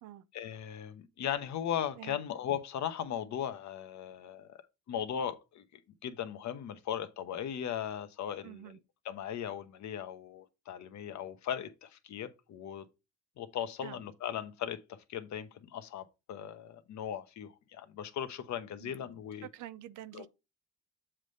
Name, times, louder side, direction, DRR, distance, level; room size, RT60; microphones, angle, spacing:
voice 1, 0.3-4.6 4.9-5.6 6.0-8.8 9.0-12.8 13.4-14.8 15.1-19.5 20.1-20.3, left 9 dB, 70° left, 1.0 m, -38 dB
voice 2, 8.4-8.8 13.8-14.0 18.8-19.1 19.4-20.3, right 13 dB, 85° right, 0.6 m, -47 dB
7.4 x 3.3 x 5.3 m
cardioid pair, 90°, 30 cm